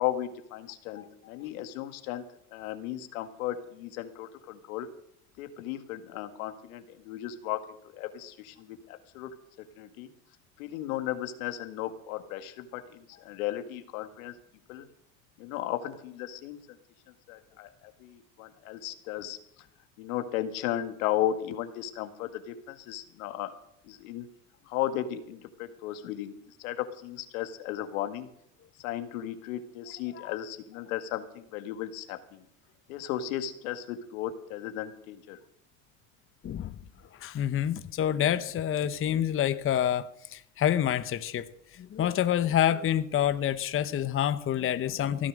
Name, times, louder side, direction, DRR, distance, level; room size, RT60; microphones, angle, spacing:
voice 1, 0.0-2.2 2.5-4.9 5.4-7.6 7.9-9.3 9.8-10.1 10.6-14.3 14.7-14.9 15.4-16.6 17.3-17.7 18.0-19.4 20.0-23.5 23.9-24.3 24.7-26.3 26.6-28.3 28.8-32.4 32.9-35.4, left 12 dB, 80° left, 1.8 m, -35 dB
voice 2, 36.4-36.8 37.2-41.5 41.8-45.3, left 10 dB, 30° left, 0.9 m, -27 dB
16.5 x 9.7 x 6.5 m
supercardioid pair, 100°, 41 cm